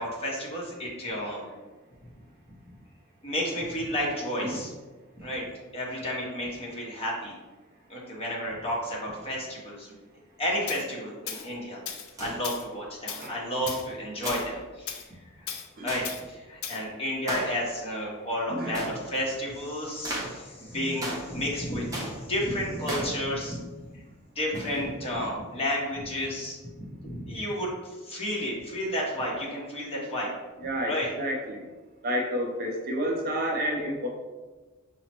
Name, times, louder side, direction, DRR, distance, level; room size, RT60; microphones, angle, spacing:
voice 1, 0.0-1.5 2.5-2.6 3.2-4.7 5.1-5.5 5.7-7.3 7.9-9.9 10.4-11.8 12.2-15.5 15.8-23.6 23.9-24.0 24.3-30.3 30.9-31.1, left 1 dB, 30° left, -4 dB, 0.9 m, -32 dB
Tools, 10.7-10.8 11.3-11.5 11.9-12.1 12.4-12.6 13.1-13.3 13.7-13.9 14.3-14.5 14.9-15.0 15.5-15.7 16.0-16.2 16.6-16.8, left 8 dB, 70° left, 0.4 m, -36 dB
sound 1, 12.1-12.4 14.2-14.6 15.9-16.1 17.3-17.6 18.7-19.0 20.0-20.4 21.0-21.3 21.9-22.2 22.8-23.2 24.5-24.8, right 1 dB, 15° right, 0.8 m, -35 dB
voice 2, 18.5-19.0 20.7-21.0 30.6-31.7 32.0-34.1, equal, 45° right, 1 dB, 0.5 m, -30 dB
5.7 x 2.0 x 2.9 m, 1.3 s
head